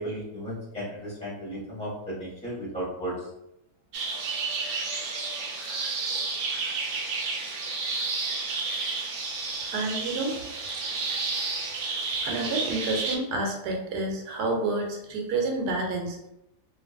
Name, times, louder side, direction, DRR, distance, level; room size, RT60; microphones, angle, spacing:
voice 1, 0.0-3.1, right 1 dB, 5° left, -8 dB, 0.8 m, -34 dB
sound 1, 3.9-13.2, right 4 dB, 65° right, 0.8 m, -31 dB
voice 2, 9.7-10.4 12.2-16.2, right 2 dB, 80° right, 1 dB, 1.2 m, -29 dB
2.8 x 2.5 x 2.4 m, 0.87 s
omnidirectional pair, 1.7 m